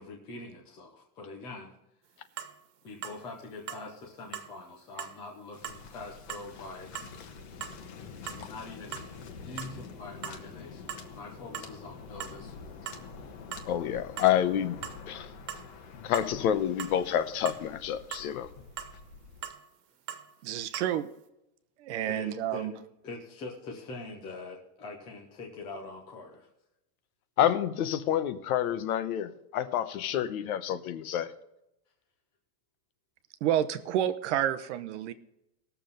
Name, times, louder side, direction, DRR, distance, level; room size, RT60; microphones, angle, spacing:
voice 1, 0.0-1.7 2.8-6.9 8.3-9.1 9.4-12.7 22.0-22.7 23.0-26.5, left 3 dB, 10° left, 0.4 m, -44 dB
sound 1, 2.4-2.5 3.0-3.2 3.7-3.9 4.3-4.5 5.0-5.2 5.6-5.8 6.3-6.5 6.9-7.1 7.6-7.8 8.3-8.4 8.8-9.2 9.6-9.8 10.2-10.4 10.9-11.1 11.5-11.7 12.2-12.4 12.9-13.0 13.5-13.7 14.2-14.3 14.8-15.0 15.5-15.7 16.1-16.3 16.8-17.0 17.5-17.6 18.1-18.3 18.8-19.0 19.4-19.6 20.1-20.3 20.7-20.9, right 10 dB, 75° right, 1.4 m, -40 dB
Waves surf, 5.5-19.5, left 5 dB, 40° left, 1.2 m, -47 dB
voice 2, 13.7-14.8 15.1-15.3 16.0-18.5 27.4-31.3, left 10 dB, 60° left, 1.0 m, -28 dB
voice 3, 20.4-21.1 21.8-22.7 33.4-35.1, right 11 dB, 45° right, 0.7 m, -29 dB
18.5 x 7.0 x 3.9 m
supercardioid pair, 175°, 49 cm